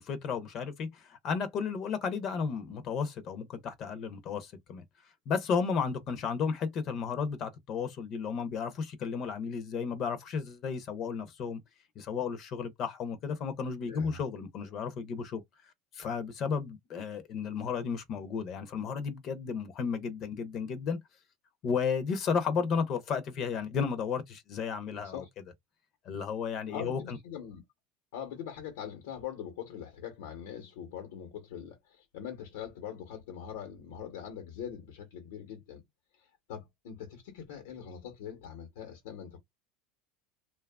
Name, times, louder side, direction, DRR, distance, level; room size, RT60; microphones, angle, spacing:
voice 1, 0.0-4.8 5.3-11.6 12.0-15.4 15.9-21.0 21.6-25.2 26.0-27.2, left 6 dB, 40° left, 0.5 m, -33 dB
voice 2, 13.8-14.2 25.0-25.3 26.7-27.6 28.1-35.8 36.1-39.4, left 8 dB, 90° left, 0.9 m, -42 dB
2.7 x 2.3 x 2.2 m
supercardioid pair, 150°, 0 cm